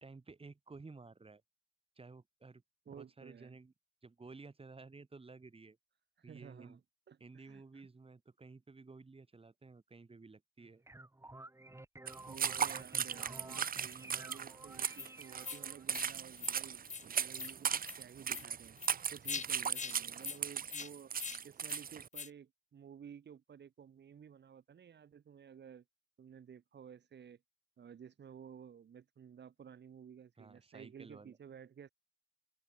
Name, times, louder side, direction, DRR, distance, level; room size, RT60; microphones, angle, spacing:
voice 1, 0.0-1.4 2.0-3.7 4.0-5.8 6.2-6.8 7.2-10.8 30.4-31.4, right 3 dB, 35° right, 2.7 m, -54 dB
voice 2, 2.9-3.6 6.2-6.8 7.1-7.9 12.2-18.8 19.1-21.1 21.4-25.8 26.2-27.4 27.8-31.9, right 8 dB, 80° right, 1.2 m, -54 dB
sound 1, 10.6-15.8, right 2 dB, 15° right, 2.2 m, -52 dB
sound 2, 12.1-22.1, right 7 dB, 55° right, 0.6 m, -37 dB
sound 3, 14.9-15.1 15.4-15.6 15.9-16.1 16.4-16.5 16.8-17.0 17.3-17.5 17.8-18.0 18.3-18.4 18.8-18.9 19.2-19.4 19.7-19.9 20.2-20.4 20.7-20.9 21.2-21.4 21.7-21.8 22.1-22.3, left 5 dB, 45° left, 0.8 m, -42 dB
open air
wide cardioid pair, 125°, 18 cm